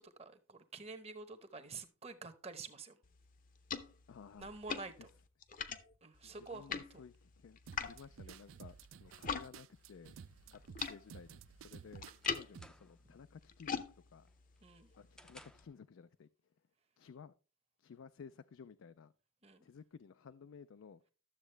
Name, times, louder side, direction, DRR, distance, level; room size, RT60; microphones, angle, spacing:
voice 1, 0.0-3.0 4.4-5.1 6.0-7.0 13.0-13.2 14.6-14.9 19.4-19.7, right 4 dB, 30° right, 0.9 m, -49 dB
sound 1, 3.0-9.5 9.8-15.6, left 6 dB, 40° left, 0.7 m, -45 dB
voice 2, 4.1-4.5 5.0-5.1 6.2-10.2 10.5-13.8 14.1-14.3 15.0-16.3 17.0-17.3 17.8-19.1 19.6-21.0, left 6 dB, 70° left, 0.4 m, -55 dB
sound 2, 7.7-12.7, right 7 dB, 75° right, 0.4 m, -54 dB
sound 3, 11.5-13.1 13.5-13.9 14.3-15.8, equal, 5° left, 0.5 m, -61 dB
12.0 x 7.3 x 3.3 m
head